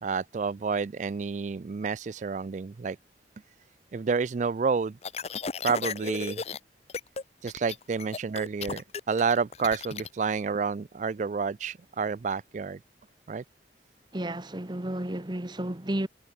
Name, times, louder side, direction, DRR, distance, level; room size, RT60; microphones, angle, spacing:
voice 1, 0.0-3.0 3.9-5.0 5.6-6.4 7.4-12.8 13.3-13.4, right 5 dB, 40° right, 0.3 m, -29 dB
sound 1, 5.0-6.6 6.9-7.2 7.5-10.1, left 5 dB, 35° left, 0.7 m, -35 dB
voice 2, 14.1-16.1, right 1 dB, 25° right, 1.2 m, -32 dB
head